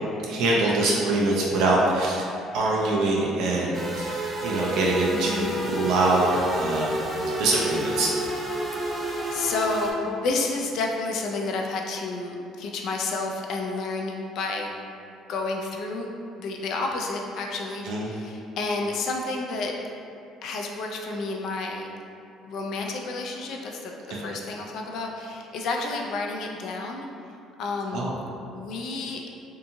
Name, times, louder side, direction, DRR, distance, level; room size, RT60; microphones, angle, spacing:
voice 1, 0.2-2.2 2.5-7.0 7.4-8.1 17.8-18.1 24.1-24.2 27.9-28.2, right 2 dB, 75° right, -3 dB, 0.3 m, -24 dB
sound 1, 3.7-9.9, right 1 dB, 20° right, 0.5 m, -30 dB
voice 2, 5.1-5.6 9.0-14.7 15.3-16.1 16.4-19.7 20.4-21.9 22.4-27.1 27.6-28.2 28.5-29.2, left 3 dB, 65° left, 1 dB, 0.3 m, -30 dB
2.7 x 2.5 x 2.5 m, 2.6 s
cardioid pair, 120°, 0 cm